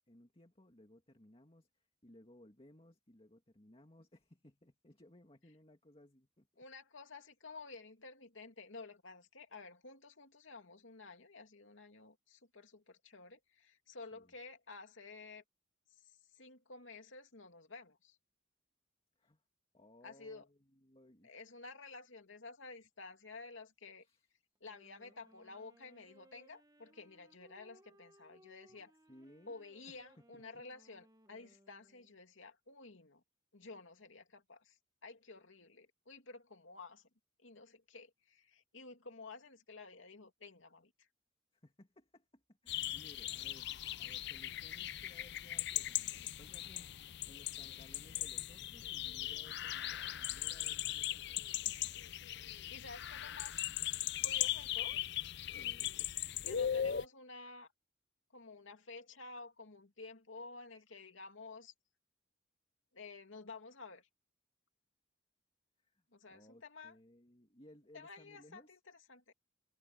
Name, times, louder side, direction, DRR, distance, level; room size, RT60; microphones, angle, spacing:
voice 1, 0.1-6.5 14.1-14.3 19.2-19.4 19.7-21.4 24.0-24.3 28.7-28.8 29.1-30.0 30.3-30.6 41.5-43.7 44.0-51.7 55.5-56.0 65.8-68.8, left 1 dB, 30° left, 2.2 m, -62 dB
voice 2, 6.6-15.4 15.9-18.2 20.0-20.5 21.2-24.1 24.6-28.9 29.5-33.2 33.5-37.1 37.4-41.1 52.7-53.6 54.2-55.0 56.4-57.7 58.3-61.7 62.9-64.1 66.1-67.0 67.9-69.3, left 3 dB, 75° left, 2.8 m, -52 dB
Wind instrument woodwind instrument, 24.6-32.3, right 1 dB, 20° right, 1.5 m, -66 dB
sound 1, 42.7-57.0, left 12 dB, 60° left, 0.5 m, -39 dB
head